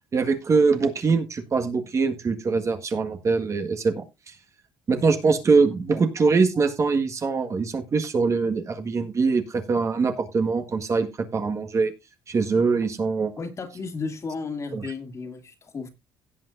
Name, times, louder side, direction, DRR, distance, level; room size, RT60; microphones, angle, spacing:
voice 1, 0.1-4.4 4.9-11.9 12.3-13.3 14.7-14.8, right 4 dB, 35° right, 5 dB, 1.7 m, -23 dB
voice 2, 13.4-15.9, left 4 dB, 35° left, 6 dB, 2.4 m, -33 dB
17.0 x 7.7 x 2.6 m, 0.24 s
cardioid pair, 105°, 8 cm